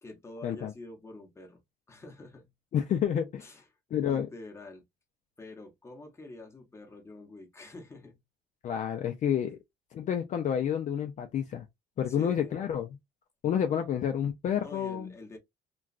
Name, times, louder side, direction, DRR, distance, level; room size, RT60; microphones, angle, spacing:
voice 1, 0.0-1.6 1.9-2.5 3.4-3.7 4.1-4.8 5.4-8.2 12.1-12.6 13.7-13.9 14.6-15.4, left 2 dB, 15° left, 0.9 m, -47 dB
voice 2, 2.7-3.4 3.9-4.3 8.6-9.6 9.9-11.6 12.0-12.9 13.4-15.1, left 9 dB, 45° left, 0.5 m, -29 dB
3.0 x 2.3 x 2.4 m
cardioid pair, 110°, 17 cm